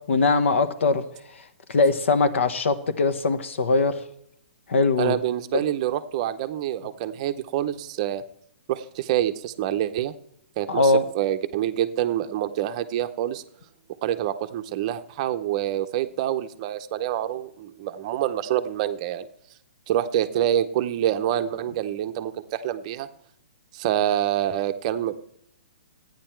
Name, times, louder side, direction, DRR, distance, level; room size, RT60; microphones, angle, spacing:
voice 1, 0.1-1.0 1.7-4.0 4.7-5.2 10.7-11.0, left 3 dB, 75° left, 12 dB, 1.2 m, -21 dB
voice 2, 5.0-8.2 8.7-10.1 10.6-13.4 14.0-19.3 19.9-23.1 23.7-25.2, right 11 dB, 30° right, 9 dB, 0.6 m, -26 dB
13.0 x 9.5 x 4.5 m, 0.73 s
hypercardioid pair, 165°, 7 cm